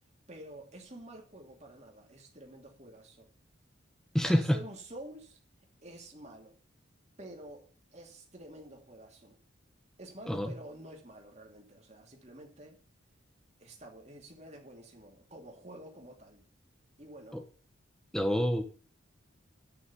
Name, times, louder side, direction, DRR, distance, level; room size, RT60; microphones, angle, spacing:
voice 1, 0.3-3.3 4.2-5.4 5.8-6.6 7.2-9.4 10.0-12.8 13.6-16.4 17.0-17.4, right 1 dB, 35° right, 1 dB, 2.6 m, -49 dB
voice 2, 4.1-4.6 10.3-10.5 17.3-17.4 18.1-18.6, equal, 5° left, 6 dB, 1.2 m, -27 dB
10.0 x 6.1 x 6.9 m, 0.40 s
head